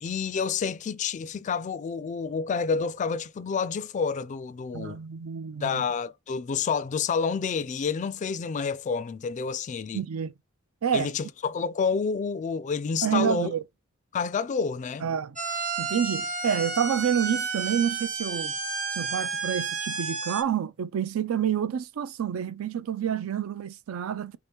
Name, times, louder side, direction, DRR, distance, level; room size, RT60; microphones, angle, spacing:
voice 1, 0.0-5.0 5.6-10.0 10.9-13.5 14.1-15.1, left 5 dB, 35° left, 0.3 m, -29 dB
voice 2, 4.7-5.9 9.9-10.3 10.8-11.1 13.0-13.6 15.0-15.4 15.8-18.5 18.9-24.4, right 8 dB, 70° right, 0.4 m, -28 dB
sound 1, 15.4-20.4, right 4 dB, 35° right, 0.9 m, -31 dB
3.7 x 2.8 x 3.5 m
head